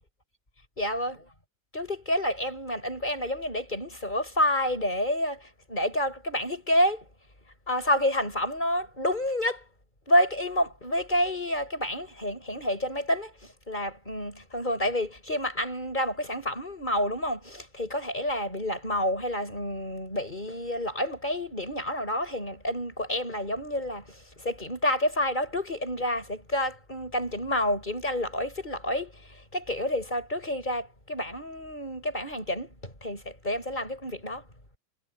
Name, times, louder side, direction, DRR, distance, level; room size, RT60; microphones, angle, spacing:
voice 1, 0.8-1.2 1.7-7.0 7.7-9.6 10.1-34.4, left 1 dB, 20° left, 7.0 m, -29 dB
omnidirectional pair, 2.4 m